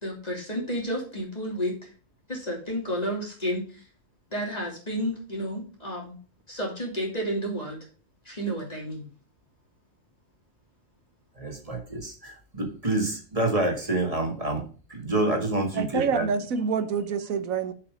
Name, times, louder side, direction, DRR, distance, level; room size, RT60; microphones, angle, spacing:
voice 1, 0.0-1.9 2.3-3.8 4.3-6.2 6.5-7.8 8.2-9.0, equal, 30° left, 2.9 m, -31 dB
voice 2, 11.4-16.3, right 2 dB, 25° right, 1.9 m, -28 dB
voice 3, 15.7-17.7, right 6 dB, 85° right, 1.3 m, -27 dB
7.2 x 5.6 x 5.1 m
omnidirectional pair, 1.4 m